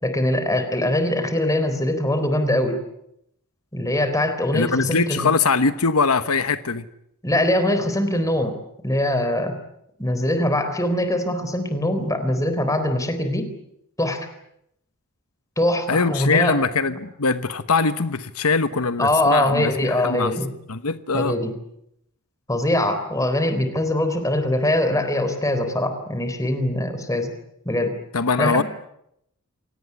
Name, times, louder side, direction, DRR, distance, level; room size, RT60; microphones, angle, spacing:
voice 1, 0.0-2.8 3.7-5.3 7.2-8.6 8.8-9.5 10.0-13.5 14.0-14.3 15.6-16.6 19.0-20.5 21.1-21.5 22.5-27.3 27.7-28.0 28.4-28.6, left 1 dB, 15° left, 9 dB, 3.9 m, -22 dB
voice 2, 4.5-6.8 15.9-20.3 20.7-21.3 28.1-28.6, left 4 dB, 90° left, 12 dB, 1.2 m, -22 dB
28.0 x 18.5 x 9.7 m, 0.78 s
head